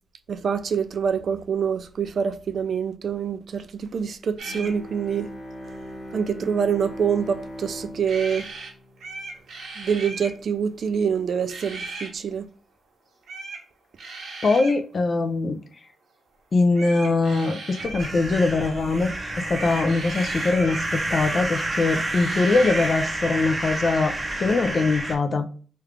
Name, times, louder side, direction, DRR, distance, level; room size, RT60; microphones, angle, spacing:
voice 1, 0.3-5.3 6.1-8.5 9.8-12.5, right 7 dB, 60° right, 0.4 m, -26 dB
Bowed string instrument, 4.4-9.7, equal, 25° left, 1.5 m, -40 dB
sound 1, 4.4-4.8 8.1-8.7 9.0-10.3 11.5-12.1 13.3-13.6 14.0-14.8 16.7-18.2 19.5-20.9 22.1-23.0, right 3 dB, 85° right, 1.1 m, -37 dB
voice 2, 14.4-15.6 16.5-19.1 19.4-25.4, left 3 dB, 45° left, 0.4 m, -22 dB
sound 2, 17.8-25.2, right 2 dB, 25° right, 0.6 m, -29 dB
3.2 x 2.4 x 3.3 m
wide cardioid pair, 125°, 0 cm